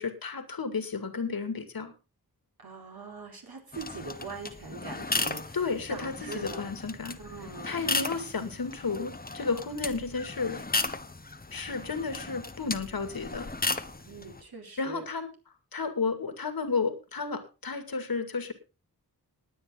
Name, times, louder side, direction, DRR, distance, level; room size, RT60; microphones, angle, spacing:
voice 1, 0.0-1.9 5.5-7.2 7.6-10.6 11.5-13.5 14.8-15.3 15.7-18.5, left 4 dB, 70° left, 9 dB, 2.3 m, -32 dB
voice 2, 2.6-5.6 5.9-6.7 7.2-7.8 14.1-15.0, right 3 dB, 70° right, 2 dB, 4.4 m, -42 dB
sound 1, 3.7-14.4, left 3 dB, 25° left, 1.1 m, -35 dB
19.5 x 9.1 x 3.8 m, 0.31 s
wide cardioid pair, 90°, 38 cm